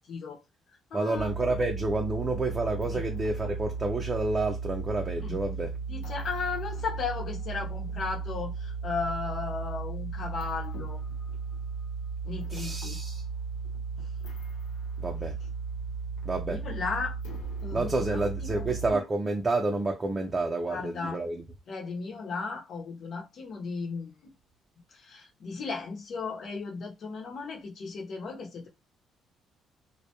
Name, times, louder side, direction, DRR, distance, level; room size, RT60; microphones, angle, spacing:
voice 1, 0.1-0.4 0.9-1.3 2.9-3.0 5.2-5.4 5.9-11.0 12.2-13.0 16.5-17.2 17.6-18.7 20.7-21.2 21.7-24.1 24.9-28.7, left 4 dB, 60° left, 0.8 m, -35 dB
voice 2, 0.9-5.7 12.5-13.2 15.0-15.4 16.2-16.6 17.7-21.4, right 2 dB, 30° right, 0.5 m, -29 dB
sound 1, 1.1-18.9, right 5 dB, 90° left, 0.5 m, -35 dB
2.2 x 2.1 x 2.8 m
supercardioid pair, 75°, 0 cm